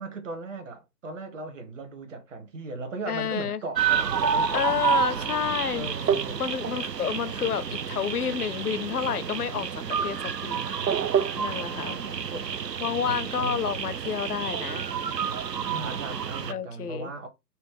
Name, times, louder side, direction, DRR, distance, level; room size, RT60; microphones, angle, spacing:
voice 1, 0.0-5.3 5.7-6.4 10.8-13.6 15.7-17.3, right 3 dB, 50° right, 1.0 m, -38 dB
voice 2, 3.1-3.6 4.5-5.9 6.4-10.2 10.4-10.6 11.4-12.0 12.8-14.8 16.5-17.1, left 7 dB, 65° left, 0.6 m, -29 dB
sound 1, 3.8-16.5, right 7 dB, 85° right, 0.6 m, -29 dB
4.1 x 2.1 x 4.5 m
figure-of-eight pair, 130°, 49 cm